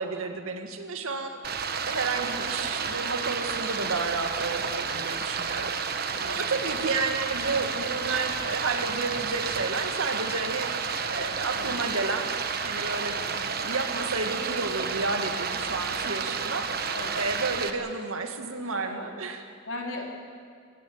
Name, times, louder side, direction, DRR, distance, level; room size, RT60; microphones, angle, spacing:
voice 1, 0.0-1.4 1.9-5.7 6.0-10.7 11.1-12.3 12.6-19.5, right 3 dB, 80° right, 5 dB, 2.2 m, -31 dB
Stream, 1.4-17.7, right 5 dB, 45° right, 1.4 m, -31 dB
voice 2, 6.0-6.5 11.5-11.8 13.1-13.4 16.9-17.3 18.8-19.1 19.7-20.1, left 2 dB, 70° left, 1 dB, 3.9 m, -38 dB
26.0 x 15.0 x 9.1 m, 2.2 s
head